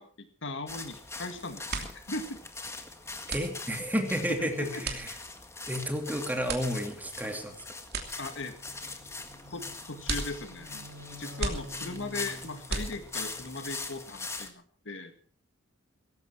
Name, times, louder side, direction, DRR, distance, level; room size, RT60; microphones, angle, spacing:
voice 1, 0.0-2.4 4.4-4.8 8.2-8.6 9.5-10.9 11.1-15.1, left 2 dB, 65° left, 8 dB, 2.0 m, -38 dB
sound 1, 0.7-14.5, left 3 dB, 15° left, 1.7 m, -42 dB
sound 2, 1.0-1.2 1.5-13.4, right 3 dB, 50° right, 2.9 m, -39 dB
voice 2, 3.3-5.1 5.6-7.6, equal, 10° right, 4 dB, 2.6 m, -31 dB
sound 3, 7.0-14.4, equal, 75° right, 7.6 m, -51 dB
17.5 x 15.5 x 4.7 m, 0.43 s
head